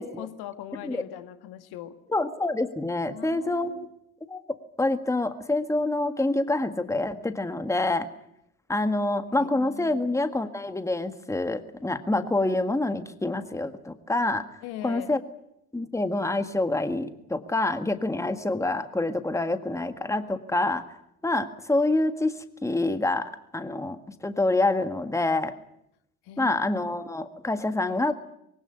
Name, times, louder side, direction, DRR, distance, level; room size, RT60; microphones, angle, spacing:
voice 1, 0.2-2.0 3.1-3.9 9.4-10.2 14.6-15.2 26.2-26.9, left 11 dB, 60° left, 9 dB, 1.9 m, -41 dB
voice 2, 2.1-3.9 4.3-4.4 4.8-8.1 8.7-14.5 14.8-15.2 15.7-20.8 21.2-24.0 24.2-25.5 26.4-28.1, left 2 dB, 5° left, 9 dB, 1.8 m, -27 dB
23.0 x 17.0 x 9.9 m, 0.80 s
figure-of-eight pair, 55°, 42 cm